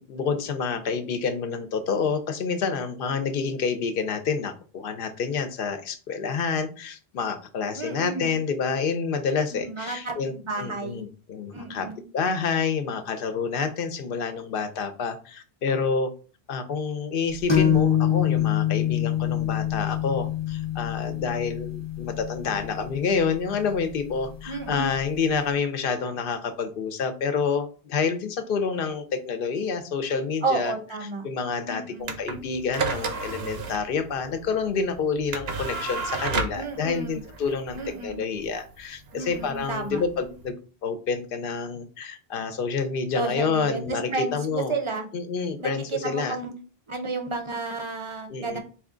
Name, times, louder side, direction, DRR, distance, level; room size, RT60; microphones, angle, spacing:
voice 1, 0.0-11.9 12.1-16.1 16.5-30.7 31.2-40.6 40.8-44.8 45.1-46.4 48.3-48.6, left 5 dB, 65° left, 10 dB, 0.7 m, -28 dB
voice 2, 7.7-8.3 9.5-11.0 11.5-12.0 24.5-24.9 30.4-31.3 31.7-32.1 36.5-37.2 37.8-38.2 39.1-40.0 43.1-45.1 45.6-46.5 46.9-48.6, right 3 dB, 35° right, 4 dB, 0.6 m, -31 dB
sound 1, 17.5-25.0, left 10 dB, 30° left, 0.8 m, -26 dB
sound 2, 32.0-40.5, right 4 dB, 75° right, 0.9 m, -33 dB
4.2 x 2.3 x 3.7 m, 0.37 s
omnidirectional pair, 1.1 m